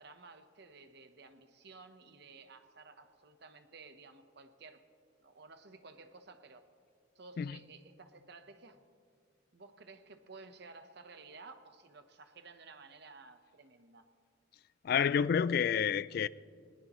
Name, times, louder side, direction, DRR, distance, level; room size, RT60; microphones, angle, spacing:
voice 1, 0.0-4.8 5.2-6.7 7.1-8.8 9.5-14.1, right 3 dB, 60° right, 1.0 m, -54 dB
voice 2, 14.8-16.3, left 7 dB, 55° left, 0.3 m, -29 dB
20.0 x 19.5 x 3.1 m
head